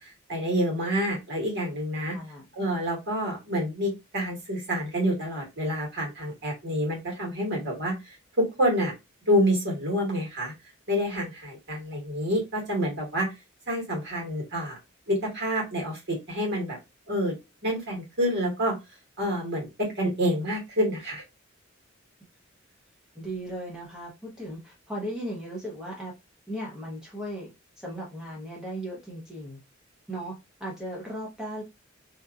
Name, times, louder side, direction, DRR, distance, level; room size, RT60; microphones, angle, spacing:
voice 1, 0.0-2.2 2.5-8.9 9.3-10.5 10.9-13.3 13.7-14.8 15.1-16.8 17.1-17.4 17.6-18.8 19.2-21.2, equal, 60° right, 1.6 m, -28 dB
voice 2, 2.1-2.4 23.1-26.1 26.5-29.6 30.1-30.3 30.6-31.6, right 1 dB, 5° right, 0.8 m, -36 dB
2.9 x 2.5 x 2.3 m
head